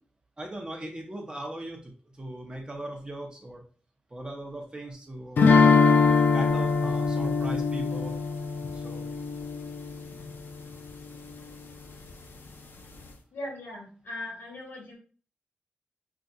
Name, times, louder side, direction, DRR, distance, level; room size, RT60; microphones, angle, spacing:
voice 1, 0.4-3.6 4.1-5.5 6.3-8.2 8.7-9.1, right 1 dB, 25° right, 1 dB, 0.9 m, -38 dB
sound 1, 5.4-10.3, left 4 dB, 65° left, 0.5 m, -22 dB
voice 2, 13.3-14.9, left 1 dB, 80° left, -2 dB, 1.7 m, -39 dB
5.7 x 2.6 x 2.4 m, 0.41 s
wide cardioid pair, 105°, 4 cm